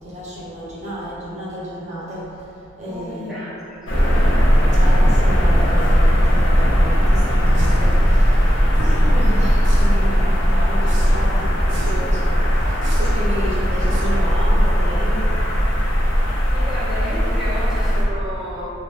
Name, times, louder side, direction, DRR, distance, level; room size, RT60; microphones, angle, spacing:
voice 1, 0.0-2.5 2.8-3.4 4.7-8.5 8.9-15.3, equal, 35° right, -7 dB, 0.8 m, -32 dB
voice 2, 2.9-4.3 16.5-18.6, equal, ahead, -11 dB, 0.7 m, -32 dB
sound 1, 3.9-18.0, equal, 65° left, 0.7 m, -17 dB
sound 2, 7.5-7.9 8.7-9.1 9.6-10.1 10.9-11.3 11.7-12.1 12.8-13.3 13.9-14.3, right 1 dB, 65° right, 0.6 m, -31 dB
3.2 x 2.9 x 3.4 m, 2.7 s
head